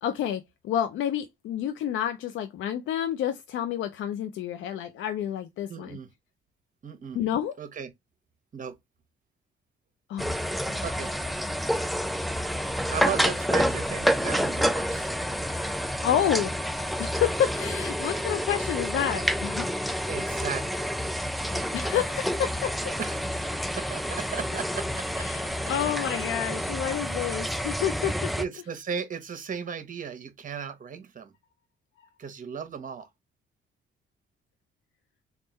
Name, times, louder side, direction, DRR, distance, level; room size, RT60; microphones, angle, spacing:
voice 1, 0.0-6.0 7.1-7.5 10.1-10.8 16.0-16.5 17.0-19.7 21.7-22.9 25.2-28.3, left 10 dB, 80° left, 0.5 m, -29 dB
voice 2, 5.7-6.1 6.8-7.2 7.6-7.9 8.5-8.8 10.8-11.1 12.9-15.1 20.1-20.9 23.0-23.5 23.8-25.3 28.4-31.3 32.2-33.1, right 7 dB, 40° right, 1.1 m, -36 dB
sound 1, 10.2-28.5, equal, ahead, 0.3 m, -29 dB
3.5 x 2.5 x 4.2 m
cardioid pair, 90°, 20 cm